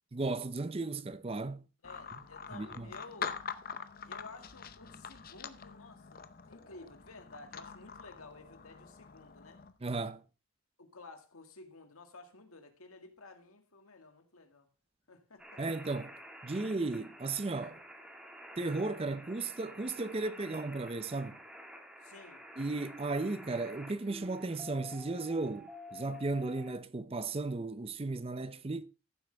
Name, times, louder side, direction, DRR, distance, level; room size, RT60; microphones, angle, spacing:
voice 1, 0.1-1.7 2.5-2.9 9.8-10.2 15.6-16.2 16.4-17.8 18.6-21.4 22.6-28.8, right 3 dB, 25° right, 0.5 m, -35 dB
voice 2, 1.8-3.4 4.0-9.6 10.8-14.7 15.1-15.6 22.0-22.4, left 3 dB, 90° left, 2.0 m, -53 dB
sound 1, 1.8-9.7, left 6 dB, 45° left, 0.7 m, -45 dB
sound 2, 15.4-26.7, equal, 5° right, 1.9 m, -50 dB
14.5 x 7.8 x 3.4 m
head